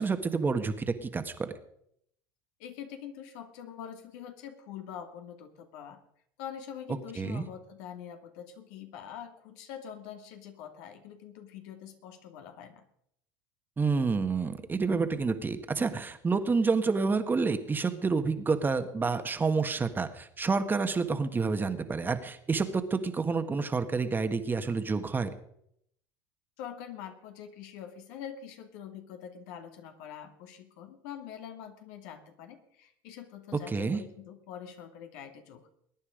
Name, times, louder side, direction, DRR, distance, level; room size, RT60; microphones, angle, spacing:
voice 1, 0.0-1.5 7.2-7.4 13.8-25.3 33.7-34.0, right 4 dB, 20° right, 8 dB, 1.5 m, -29 dB
voice 2, 2.6-6.0 6.4-12.9 26.6-35.7, left 9 dB, 75° left, 5 dB, 2.4 m, -44 dB
21.0 x 9.8 x 5.1 m, 0.72 s
supercardioid pair, 105°, 10 cm